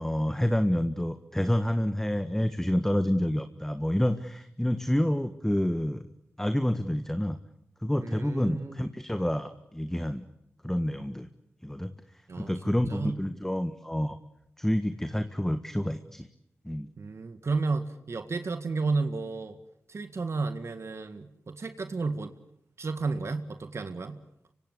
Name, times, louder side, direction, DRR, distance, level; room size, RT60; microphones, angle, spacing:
voice 1, 0.0-6.1 6.4-7.4 7.8-10.2 10.6-11.3 11.6-11.9 12.4-14.2 14.6-16.3 16.6-16.9, equal, 5° left, 9 dB, 1.5 m, -28 dB
voice 2, 8.0-8.8 12.3-13.2 17.0-19.6 19.9-22.3 22.8-24.2, right 3 dB, 60° right, 9 dB, 1.9 m, -32 dB
25.0 x 24.5 x 8.2 m, 0.76 s
cardioid pair, 45°, 5 cm